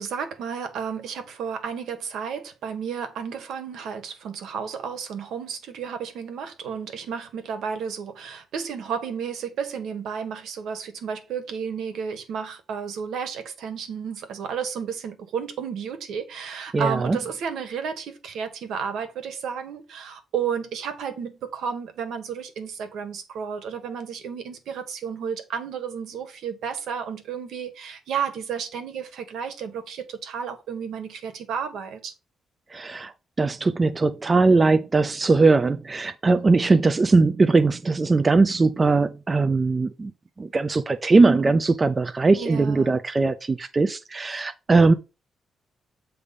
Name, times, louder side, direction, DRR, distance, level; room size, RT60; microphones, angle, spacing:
voice 1, 0.0-32.1 36.3-36.7 42.3-43.0, right 7 dB, 75° right, 1.6 m, -32 dB
voice 2, 16.7-17.2 32.7-33.1 33.4-40.1 40.4-44.9, right 3 dB, 20° right, 0.5 m, -20 dB
8.1 x 3.4 x 5.3 m
cardioid pair, 155°, 0 cm